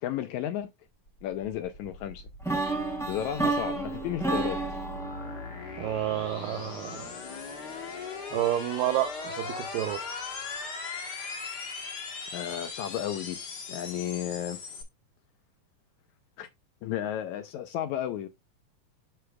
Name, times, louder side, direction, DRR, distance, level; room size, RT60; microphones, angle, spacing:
voice 1, 0.0-0.7 1.2-2.2 3.1-4.6 12.3-13.4 13.7-14.6 16.4-16.5 16.8-18.3, left 11 dB, 80° left, 1.8 m, -33 dB
sound 1, 1.1-14.8, left 4 dB, 60° left, 1.1 m, -39 dB
sound 2, 2.4-6.4, right 3 dB, ahead, 0.9 m, -31 dB
voice 2, 5.8-7.1 8.3-10.0, right 13 dB, 80° right, 2.3 m, -30 dB
7.8 x 6.0 x 2.3 m
omnidirectional pair, 3.9 m